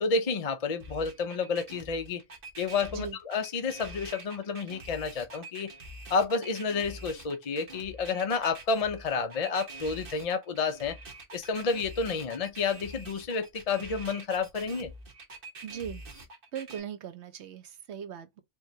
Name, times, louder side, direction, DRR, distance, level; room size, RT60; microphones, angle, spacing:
voice 1, 0.0-2.2 2.6-5.7 6.1-11.0 11.3-14.9, left 4 dB, 40° left, 0.5 m, -30 dB
sound 1, 0.8-16.8, right 2 dB, 50° right, 1.3 m, -45 dB
voice 2, 15.6-16.0 16.5-18.4, right 9 dB, 70° right, 1.0 m, -39 dB
4.5 x 3.2 x 2.7 m
omnidirectional pair, 1.2 m